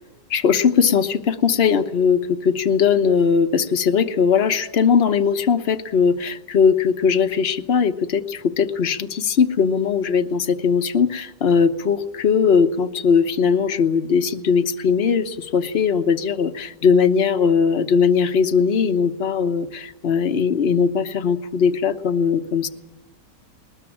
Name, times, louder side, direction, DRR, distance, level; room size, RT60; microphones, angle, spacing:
voice 1, 0.3-22.7, left 6 dB, 40° left, 9 dB, 1.2 m, -19 dB
21.0 x 20.0 x 8.7 m, 1.0 s
omnidirectional pair, 1.8 m